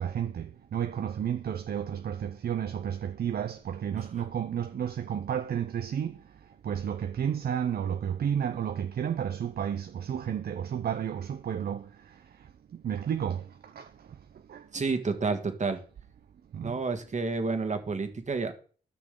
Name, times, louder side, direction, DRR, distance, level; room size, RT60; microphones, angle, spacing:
voice 1, 0.0-6.2 6.6-11.8 12.8-13.4 13.8-13.9 14.5-14.6 16.5-16.7, right 9 dB, 65° right, 0.5 m, -31 dB
voice 2, 14.7-15.8 16.6-18.5, right 4 dB, 45° right, 1.5 m, -30 dB
13.5 x 6.1 x 3.7 m
cardioid pair, 75°, 17 cm